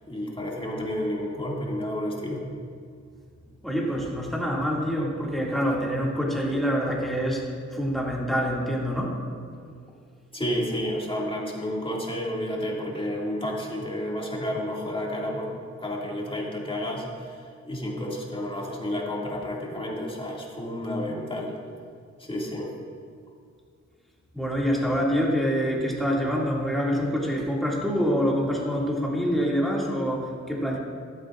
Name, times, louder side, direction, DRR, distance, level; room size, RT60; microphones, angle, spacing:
voice 1, 0.1-2.5 10.3-15.5 15.8-21.5 22.2-22.7, left 1 dB, 15° left, -3 dB, 2.1 m, -31 dB
voice 2, 3.6-9.2 24.3-30.8, equal, ahead, -4 dB, 2.2 m, -26 dB
13.5 x 12.5 x 2.4 m, 2.2 s
wide cardioid pair, 100°, 30 cm